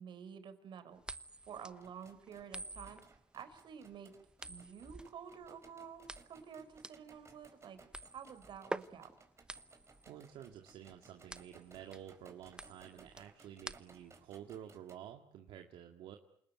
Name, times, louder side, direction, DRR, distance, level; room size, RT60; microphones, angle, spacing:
voice 1, 0.0-3.0 3.3-4.1 4.5-7.8 8.1-9.1, right 7 dB, 65° right, 10 dB, 4.3 m, -50 dB
sound 1, 1.0-14.2, right 1 dB, 10° right, 1.0 m, -48 dB
sound 2, 1.7-14.9, right 4 dB, 30° right, 4.6 m, -63 dB
voice 2, 10.1-16.2, right 10 dB, 80° right, 3 dB, 2.1 m, -51 dB
28.5 x 19.5 x 9.3 m, 0.74 s
cardioid pair, 80°, 9 cm